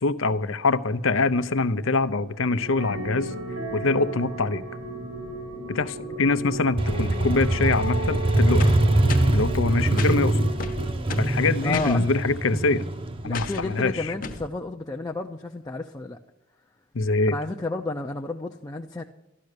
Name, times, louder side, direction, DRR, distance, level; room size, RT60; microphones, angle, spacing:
voice 1, 0.0-3.4 3.7-4.6 5.7-8.7 9.3-10.4 11.2-12.8 13.2-14.1 16.9-17.3, left 3 dB, 75° left, 14 dB, 0.7 m, -24 dB
sound 1, 2.6-10.9, right 1 dB, 85° right, 4.2 m, -34 dB
Motorcycle, 6.8-14.4, right 1 dB, 25° right, 0.8 m, -24 dB
sound 2, 8.6-9.4 10.0-10.2 10.6-11.4 11.7-12.0 13.3-13.7 14.2-14.5, left 4 dB, 40° left, 1.0 m, -34 dB
voice 2, 11.6-12.1 13.2-16.2 17.3-19.0, left 2 dB, 15° left, 2 dB, 0.5 m, -32 dB
13.0 x 12.0 x 6.6 m, 0.94 s
head